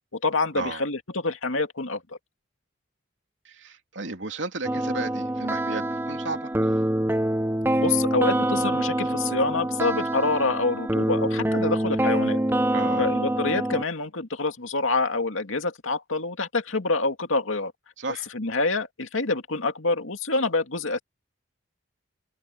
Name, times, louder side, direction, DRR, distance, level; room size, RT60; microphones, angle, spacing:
voice 1, 0.2-2.0 7.8-12.4 13.0-17.7 18.3-21.0, left 3 dB, 90° left, 2.4 m, -26 dB
voice 2, 3.4-6.8 12.7-13.1 18.0-18.3, right 3 dB, 70° right, 2.8 m, -34 dB
sound 1, 4.6-13.8, right 1 dB, 10° right, 0.7 m, -25 dB
open air
head